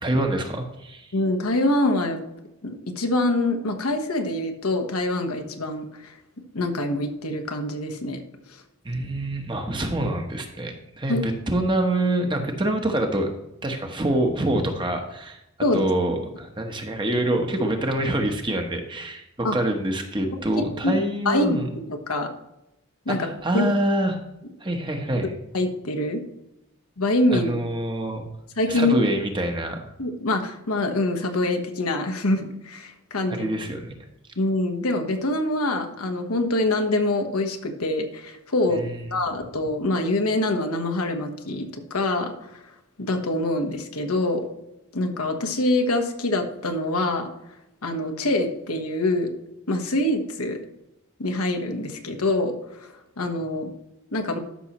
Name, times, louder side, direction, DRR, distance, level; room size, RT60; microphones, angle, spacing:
voice 1, 0.0-1.1 8.8-13.3 13.6-15.4 15.7-21.6 23.1-24.2 24.6-25.3 27.3-28.3 28.7-29.9 33.3-33.9 38.7-39.2, right 1 dB, 20° right, 4 dB, 1.0 m, -26 dB
voice 2, 1.1-2.2 2.6-5.9 6.5-8.2 11.1-11.2 15.6-15.8 19.4-19.6 20.6-21.0 21.2-21.6 21.9-22.3 23.0-23.3 23.5-23.7 25.5-26.2 27.0-27.5 28.6-29.0 30.0-33.5 34.4-38.8 39.1-42.5 43.0-44.5 44.9-47.3 47.8-49.3 49.7-50.6 51.2-52.5 52.8-52.9 53.2-53.7 54.1-54.4, left 2 dB, 90° left, 5 dB, 1.3 m, -25 dB
12.5 x 6.2 x 3.0 m, 0.88 s
head